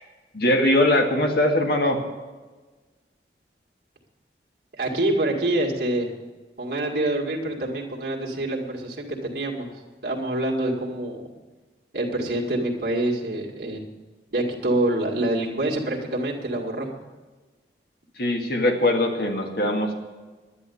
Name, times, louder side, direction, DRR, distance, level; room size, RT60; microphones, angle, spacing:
voice 1, 0.3-2.0 18.2-19.9, left 1 dB, 60° left, 3 dB, 1.8 m, -21 dB
voice 2, 4.7-6.1 6.6-9.7 10.0-11.3 11.9-13.8 14.3-16.9, right 1 dB, 60° right, -2 dB, 2.1 m, -26 dB
10.5 x 10.5 x 7.0 m, 1.3 s
head